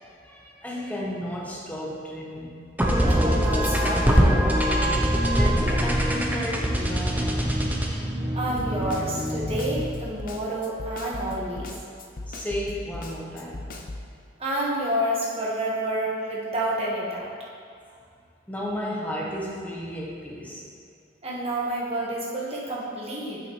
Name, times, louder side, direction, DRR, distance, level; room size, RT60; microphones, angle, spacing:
voice 1, 0.2-2.6 2.9-3.1 5.4-7.6 11.6-11.7 12.3-13.8 18.5-20.6, equal, 10° left, -4 dB, 0.9 m, -33 dB
sound 1, 2.8-10.1, equal, 10° right, 0.6 m, -23 dB
voice 2, 3.1-4.6 8.3-11.7 14.4-17.3 21.2-23.4, right 1 dB, 30° right, -5 dB, 1.4 m, -29 dB
Snare drum, 8.6-14.1, left 2 dB, 45° left, 0.6 m, -37 dB
8.7 x 6.9 x 3.2 m, 2.3 s
head